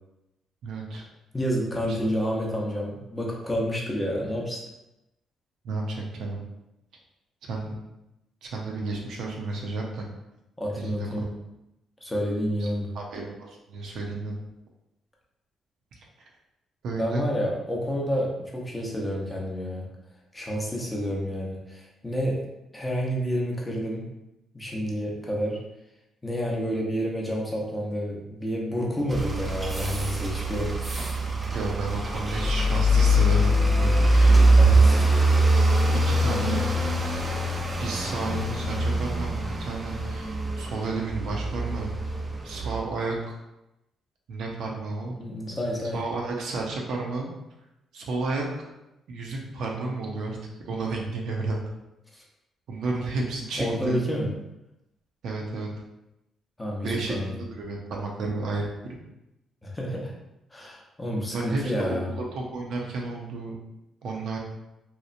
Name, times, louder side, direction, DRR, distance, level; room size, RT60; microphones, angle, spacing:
voice 1, 0.6-1.0 5.6-6.4 7.5-7.8 8.4-10.1 10.8-11.1 12.6-12.7 12.9-14.4 16.8-17.2 31.5-34.5 36.0-36.6 37.8-41.9 42.4-43.4 44.3-45.2 45.9-47.3 47.9-48.5 49.1-50.4 50.6-51.7 52.7-54.0 55.2-55.7 56.8-57.2 57.5-59.0 61.3-63.6 64.0-64.4, right 3 dB, 75° right, -1 dB, 0.5 m, -32 dB
voice 2, 1.3-4.6 10.6-11.3 12.0-13.0 17.0-19.9 20.3-22.4 22.7-24.1 24.5-25.6 26.2-30.8 34.6-35.1 45.2-46.0 52.1-52.2 53.6-54.3 56.6-57.4 59.6-60.1 60.5-62.1, equal, 15° left, -2 dB, 0.6 m, -29 dB
sound 1, 29.1-42.8, right 1 dB, 25° right, 0.4 m, -23 dB
2.9 x 2.0 x 2.5 m, 0.92 s
cardioid pair, 90°, 0 cm